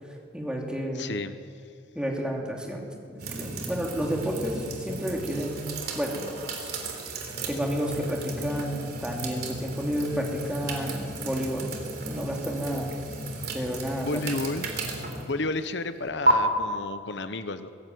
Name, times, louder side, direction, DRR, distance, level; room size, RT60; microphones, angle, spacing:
voice 1, 0.3-1.1 1.9-5.7 5.9-6.7 7.5-11.7 12.1-12.9 13.5-14.2, equal, 5° right, -1 dB, 2.9 m, -31 dB
voice 2, 0.9-1.4 13.3-13.5 14.0-14.7 15.3-17.7, left 2 dB, 70° left, 11 dB, 0.9 m, -32 dB
sound 1, 3.2-16.3, right 2 dB, 55° right, 3.6 m, -33 dB
23.0 x 15.5 x 9.3 m, 2.3 s
head